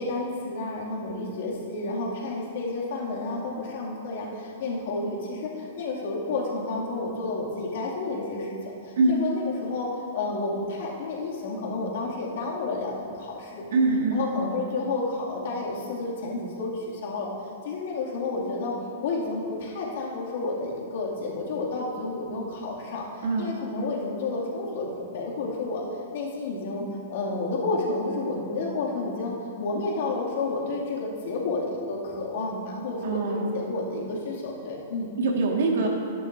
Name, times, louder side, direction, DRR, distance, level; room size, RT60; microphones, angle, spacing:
voice 1, 0.0-13.7 14.1-17.3 17.6-18.7 19.0-23.1 23.4-25.8 26.1-29.3 29.6-35.1, left 3 dB, 65° left, -4 dB, 2.4 m, -31 dB
voice 2, 13.7-14.2 23.2-23.5 33.0-33.5 35.2-35.9, right 3 dB, 75° right, 0 dB, 1.8 m, -23 dB
12.0 x 10.5 x 2.7 m, 2.7 s
hypercardioid pair, 150°, 0 cm